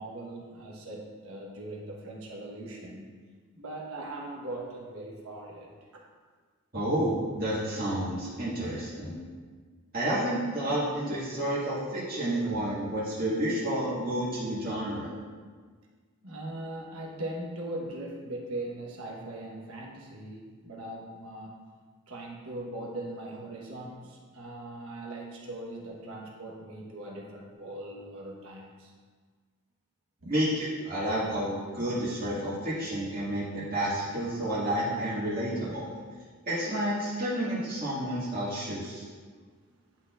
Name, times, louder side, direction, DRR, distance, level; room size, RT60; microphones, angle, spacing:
voice 1, 0.0-3.1 3.5-6.1 16.2-21.5 22.1-28.9 30.2-30.3 39.0-39.1, right 1 dB, 70° right, -1 dB, 1.2 m, -40 dB
voice 2, 6.7-9.2 9.9-15.1 30.3-35.9 36.4-39.1, right 1 dB, 40° right, -11 dB, 1.9 m, -30 dB
11.0 x 4.2 x 2.5 m, 1.5 s
head